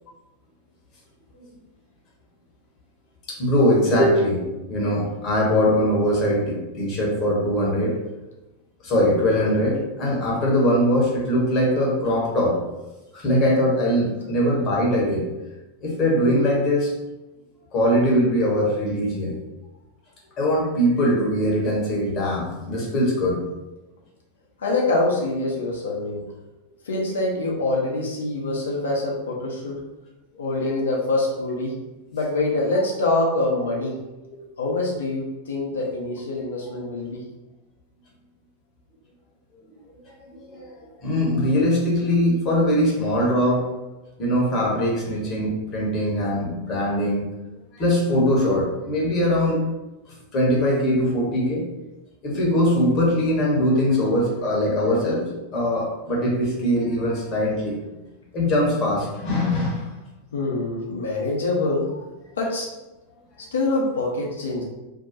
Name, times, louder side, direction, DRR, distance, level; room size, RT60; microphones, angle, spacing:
voice 1, 3.3-4.4 4.7-8.0 8.8-12.5 13.1-15.3 15.8-16.9 17.7-19.4 20.4-23.4 30.6-30.7 40.3-40.7 41.0-43.6 44.2-47.3 47.7-49.6 50.3-51.6 52.2-55.2 55.5-57.8 58.3-60.0, equal, 35° left, -3 dB, 0.9 m, -21 dB
voice 2, 24.6-26.2 26.8-29.8 30.4-31.7 32.1-33.9 34.6-37.2 60.3-61.9 62.4-62.7 63.5-64.6, left 2 dB, 65° left, -2 dB, 0.6 m, -25 dB
2.6 x 2.2 x 2.5 m, 1.0 s
figure-of-eight pair, 90°, 0 cm